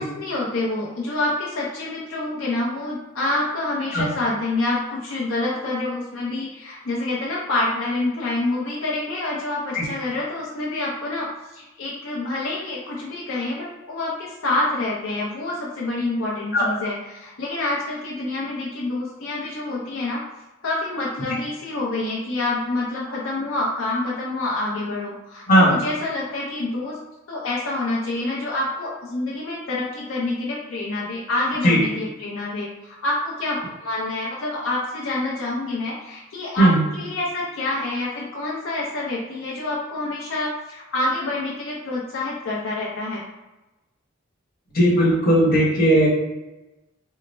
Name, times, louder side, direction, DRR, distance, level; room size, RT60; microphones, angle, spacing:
voice 1, 0.0-20.2 20.6-27.0 27.3-43.2, left 2 dB, 75° left, -4 dB, 0.5 m, -27 dB
voice 2, 44.7-46.1, right 1 dB, 45° left, -4 dB, 1.0 m, -16 dB
3.9 x 2.1 x 3.2 m, 1.1 s
head